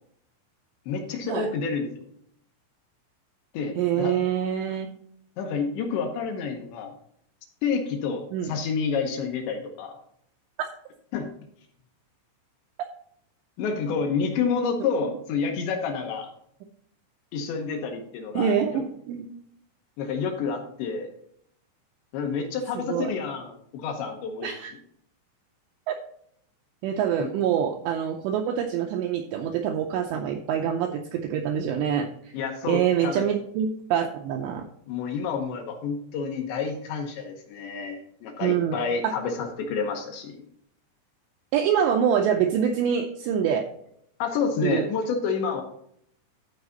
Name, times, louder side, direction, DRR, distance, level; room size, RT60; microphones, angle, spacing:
voice 1, 0.9-2.0 3.5-4.2 5.4-6.9 7.6-10.0 11.1-11.3 13.6-16.3 17.3-18.8 20.0-21.1 22.1-24.5 27.2-27.3 32.3-33.2 34.9-40.4 44.2-45.6, left 5 dB, 75° left, 3 dB, 2.9 m, -29 dB
voice 2, 3.8-4.9 8.3-8.6 18.4-19.3 22.8-23.1 24.4-24.7 25.9-26.0 26.8-32.1 32.7-34.7 38.4-39.1 41.5-43.7 44.6-44.9, right 8 dB, 85° right, 4 dB, 2.5 m, -25 dB
14.0 x 4.9 x 4.0 m, 0.69 s
omnidirectional pair, 5.8 m